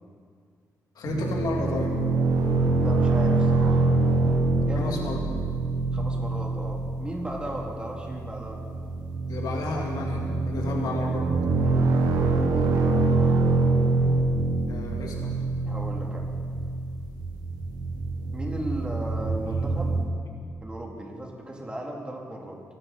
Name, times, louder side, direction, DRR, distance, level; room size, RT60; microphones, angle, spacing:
voice 1, 1.0-1.9 4.7-5.2 7.4-7.5 9.3-11.3 14.7-15.4, left 2 dB, 70° left, 0 dB, 2.5 m, -32 dB
sound 1, 1.0-20.0, right 3 dB, 90° right, 1.7 m, -25 dB
voice 2, 2.8-3.9 4.7-5.0 5.9-8.7 11.6-12.7 15.6-16.3 18.3-20.0 20.6-22.6, right 1 dB, 15° right, -1 dB, 2.8 m, -36 dB
22.5 x 13.0 x 4.3 m, 2.1 s
cardioid pair, 110°, 7 cm